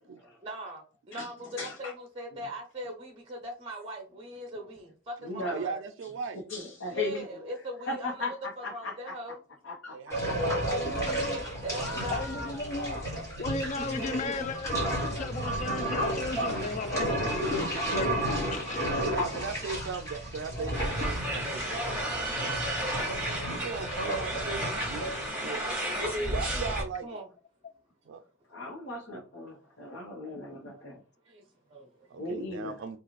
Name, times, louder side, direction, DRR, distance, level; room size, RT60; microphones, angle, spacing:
voice 1, 0.4-5.8 6.9-9.4 11.6-12.2 23.2-23.3 26.0-26.4 27.0-27.3 31.2-32.2, equal, 30° right, 0.6 m, -39 dB
voice 2, 1.6-1.9 5.2-5.6 6.5-7.2 7.9-9.1 9.6-10.4 11.7-12.7 13.8-14.5 15.0-17.4 23.0-23.9 28.5-31.0 32.2-32.7, left 2 dB, 75° left, 1.0 m, -38 dB
voice 3, 5.5-6.4 9.9-11.2 11.7-12.0 19.0-22.6 23.5-25.6 26.3-27.1 28.1-28.2 32.1-33.0, right 5 dB, 70° right, 0.3 m, -38 dB
sound 1, 10.1-25.3, equal, 15° left, 1.8 m, -32 dB
voice 4, 10.7-11.4 12.1-13.0 13.4-18.1 18.5-19.1, left 3 dB, 35° left, 0.4 m, -36 dB
sound 2, 20.7-26.8, right 1 dB, 5° right, 1.9 m, -33 dB
4.8 x 2.4 x 3.1 m
head